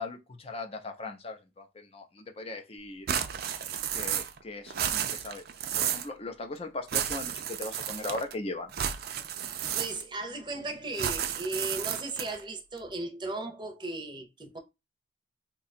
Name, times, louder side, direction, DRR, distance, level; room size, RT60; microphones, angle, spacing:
voice 1, 0.0-3.1 3.9-5.4 5.8-8.7, left 2 dB, 35° left, 0.6 m, -39 dB
sound 1, 3.1-4.4 4.7-6.1 6.9-8.3 8.7-10.2 10.9-12.4, right 9 dB, 55° right, 0.4 m, -32 dB
voice 2, 9.7-14.6, right 2 dB, 25° right, 0.7 m, -36 dB
2.8 x 2.3 x 4.1 m
head